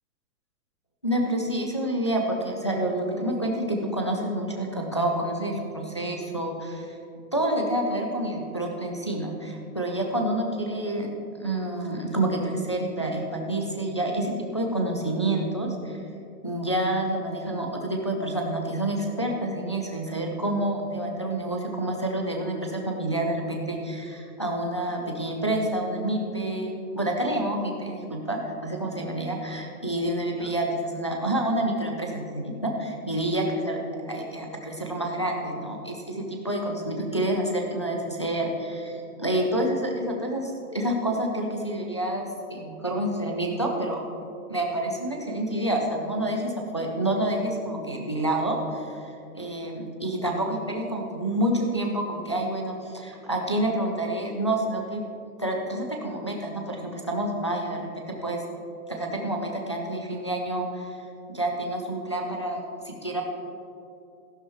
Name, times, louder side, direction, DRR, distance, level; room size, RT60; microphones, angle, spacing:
voice 1, 1.0-7.0 7.3-11.1 11.4-16.0 16.4-44.0 44.5-55.0 55.4-57.8 58.2-58.4 58.9-61.0 61.3-63.2, right 1 dB, 20° left, 1 dB, 0.4 m, -28 dB
14.0 x 11.5 x 3.0 m, 2.7 s
hypercardioid pair, 170°, 46 cm